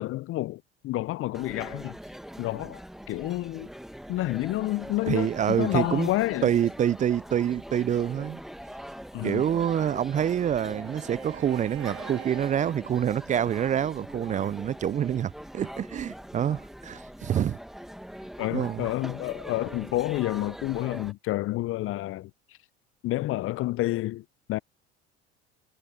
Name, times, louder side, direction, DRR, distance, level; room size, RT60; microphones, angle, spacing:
voice 1, 0.0-2.0 2.4-3.7 4.1-6.5 9.1-9.4 18.4-22.3 23.0-24.6, left 17 dB, 45° left, 0.5 m, -29 dB
sound 1, 1.3-21.1, equal, ahead, 1.6 m, -42 dB
voice 2, 5.1-6.1 6.4-8.4 9.2-17.6 18.5-18.9, right 9 dB, 25° right, 0.4 m, -26 dB
Bowed string instrument, 9.2-13.7, right 27 dB, 60° right, 0.7 m, -47 dB
hypercardioid pair, 70°, 31 cm